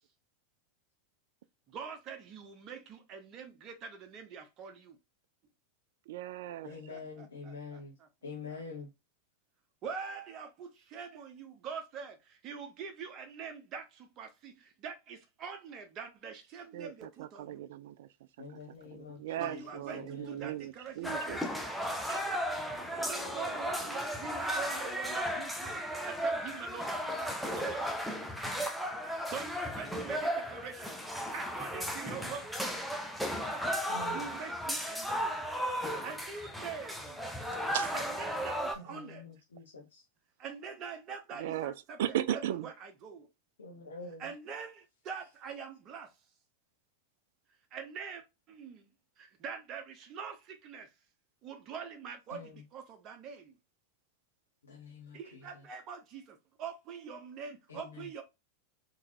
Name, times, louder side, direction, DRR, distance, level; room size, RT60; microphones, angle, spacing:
voice 1, 1.7-5.0 6.7-8.1 8.5-8.6 9.8-17.7 19.4-21.8 22.9-27.9 29.3-32.9 34.1-35.5 35.8-37.2 37.9-39.2 40.4-42.0 42.3-43.3 44.2-46.1 47.7-48.9 49.2-50.9 51.4-53.6 55.1-58.2, right 6 dB, 35° right, 1.0 m, -44 dB
voice 2, 6.1-6.7 16.7-18.1 18.5-18.6 18.9-21.4 22.1-22.3 37.5-37.9 41.3-41.7 42.0-42.7, right 12 dB, 60° right, 0.3 m, -37 dB
voice 3, 6.6-7.9 8.2-8.9 18.4-19.6 19.9-20.5 33.9-34.3 38.9-40.0 43.6-44.3 52.3-52.6 54.6-55.4 57.7-58.1, left 3 dB, 75° left, 1.1 m, -46 dB
sound 1, 18.6-18.8 19.3-19.8 20.4-20.5 20.9-24.9, left 3 dB, 30° left, 1.2 m, -51 dB
sound 2, 21.0-38.8, equal, ahead, 0.7 m, -35 dB
3.8 x 3.0 x 2.7 m
figure-of-eight pair, 90°, 0 cm